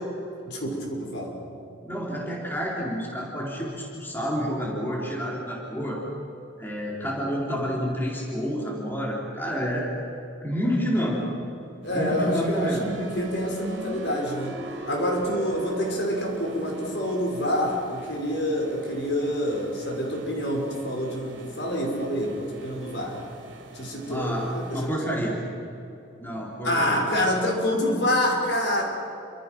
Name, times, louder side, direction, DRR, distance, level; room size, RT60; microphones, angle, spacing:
voice 1, 0.5-1.4 11.8-23.2 23.7-25.0 26.6-28.8, equal, 60° left, 0 dB, 5.9 m, -27 dB
voice 2, 1.9-6.0 6.6-9.9 10.4-11.3 11.9-12.9 24.0-25.4 26.2-27.0, equal, 10° left, -3 dB, 4.0 m, -29 dB
sound 1, 11.8-24.9, right 1 dB, 70° right, 3.3 m, -40 dB
28.5 x 26.0 x 6.2 m, 2.9 s
head